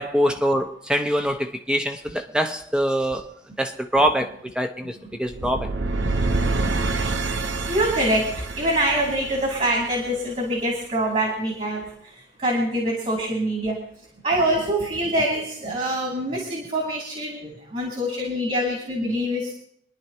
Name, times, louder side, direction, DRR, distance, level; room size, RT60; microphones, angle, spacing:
voice 1, 0.0-3.3 3.6-5.7, equal, 5° right, 0.7 m, -24 dB
sound 1, 5.3-10.3, right 3 dB, 80° right, 0.8 m, -27 dB
voice 2, 7.6-12.1 12.4-13.8 14.2-19.5, right 1 dB, 40° right, 2.7 m, -25 dB
27.5 x 10.5 x 2.9 m
head